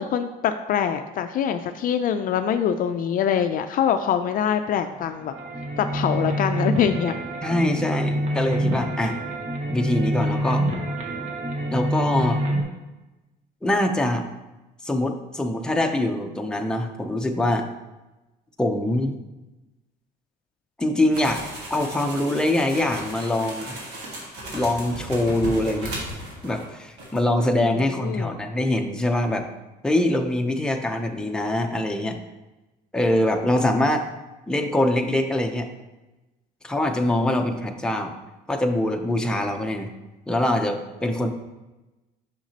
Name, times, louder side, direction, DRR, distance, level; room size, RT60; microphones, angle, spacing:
voice 1, 0.0-5.3 5.8-7.1 27.8-28.4, left 8 dB, 55° left, 9 dB, 0.4 m, -24 dB
sound 1, 4.9-12.6, right 1 dB, 45° right, 1.0 m, -26 dB
voice 2, 7.4-9.2 9.7-10.7 11.7-12.4 13.6-14.3 14.8-17.7 18.6-19.2 20.8-21.4 21.7-23.7 24.5-25.9 26.4-29.5 29.8-32.2 32.9-34.1 34.5-35.7 36.6-38.1 38.5-39.9 40.3-41.3, left 1 dB, 5° left, 3 dB, 0.6 m, -23 dB
sound 2, 21.1-26.7 27.0-27.2, right 1 dB, 85° right, 1.7 m, -36 dB
5.9 x 5.9 x 2.8 m, 1.1 s
cardioid pair, 110°, 17 cm